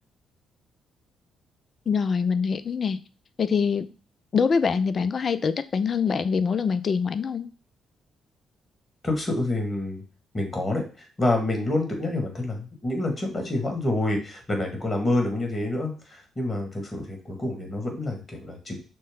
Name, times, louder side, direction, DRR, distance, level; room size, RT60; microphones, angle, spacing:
voice 1, 1.9-3.0 3.4-3.9 4.3-7.5, left 6 dB, 50° left, 13 dB, 0.4 m, -24 dB
voice 2, 9.0-10.0 10.3-18.8, left 2 dB, 30° left, 2 dB, 1.9 m, -27 dB
6.3 x 2.2 x 3.7 m, 0.36 s
hypercardioid pair, 50°, 0 cm